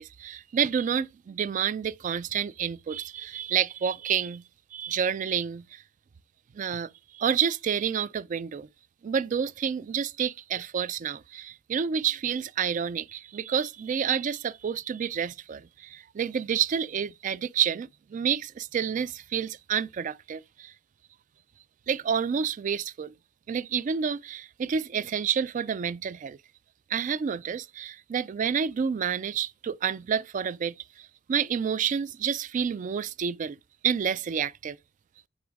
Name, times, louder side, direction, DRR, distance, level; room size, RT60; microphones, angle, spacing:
voice 1, 0.0-4.4 4.7-5.8 6.6-8.7 9.0-20.7 21.9-23.1 23.5-26.4 26.9-33.6 33.8-34.8, right 7 dB, 40° right, 0.3 m, -29 dB
9.4 x 3.9 x 3.5 m
head